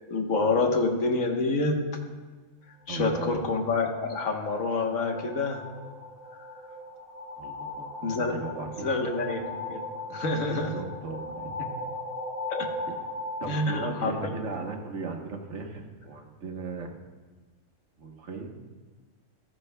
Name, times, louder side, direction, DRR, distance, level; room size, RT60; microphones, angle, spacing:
voice 1, 0.1-1.8 2.9-5.6 8.0-8.3 8.8-9.4 9.7-9.8 10.1-10.7 12.5-12.7 13.5-14.1, left 3 dB, 75° left, 2 dB, 1.6 m, -27 dB
voice 2, 2.9-3.4 7.4-7.9 8.3-9.0 10.5-11.9 13.4-16.9 18.0-18.6, right 4 dB, 60° right, 3 dB, 1.5 m, -37 dB
sound 1, 3.5-14.9, left 2 dB, 90° right, 1.3 m, -39 dB
15.0 x 13.0 x 2.2 m, 1.3 s
omnidirectional pair, 1.4 m